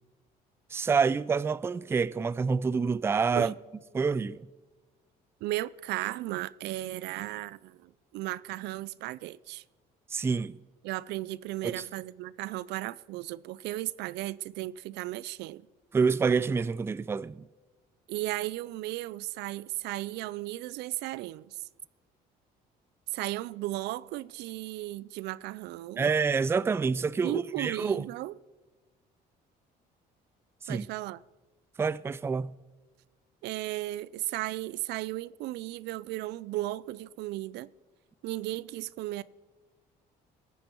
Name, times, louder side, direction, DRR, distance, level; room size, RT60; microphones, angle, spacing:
voice 1, 0.7-3.5 3.9-4.5 10.1-10.6 11.6-11.8 15.9-17.5 26.0-28.1 30.6-30.9 31.8-32.5, right 5 dB, 15° right, 0.3 m, -27 dB
voice 2, 5.4-9.6 10.8-15.6 18.1-21.6 23.1-26.1 27.2-28.3 30.7-31.2 33.4-37.7 38.2-39.2, right 17 dB, 85° right, 0.4 m, -35 dB
21.0 x 9.3 x 4.5 m
cardioid pair, 110°, 17 cm